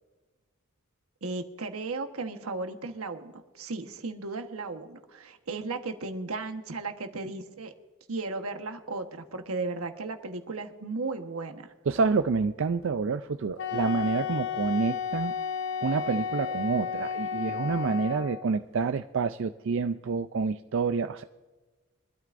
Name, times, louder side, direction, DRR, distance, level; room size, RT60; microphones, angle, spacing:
voice 1, 1.2-7.7 8.1-11.7, right 3 dB, 90° right, 6 dB, 1.2 m, -35 dB
voice 2, 11.9-15.3 15.8-21.2, right 4 dB, 60° right, 9 dB, 0.4 m, -28 dB
Wind instrument woodwind instrument, 13.6-18.5, left 7 dB, 55° left, 0.8 m, -33 dB
23.5 x 12.5 x 2.6 m, 1.2 s
head